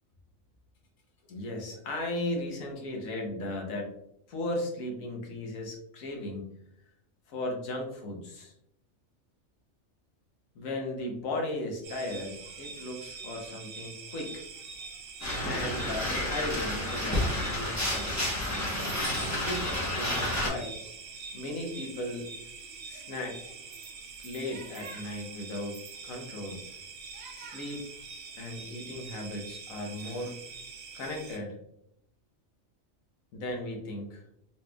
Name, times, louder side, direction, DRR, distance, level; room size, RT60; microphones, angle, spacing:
voice 1, 1.3-3.9 4.3-6.5 7.3-8.5 10.5-14.4 15.4-18.3 19.4-20.8 21.3-22.4 22.9-23.4 24.2-25.8 26.0-26.6 27.3-27.8 28.4-30.4 30.9-31.6 33.3-34.2, left 1 dB, 80° left, 1 dB, 1.3 m, -36 dB
sound 1, 11.8-31.4, right 4 dB, 85° right, 1.1 m, -44 dB
sound 2, 15.2-20.5, left 1 dB, 15° left, 0.7 m, -30 dB
4.2 x 3.2 x 2.2 m, 0.77 s
omnidirectional pair, 1.4 m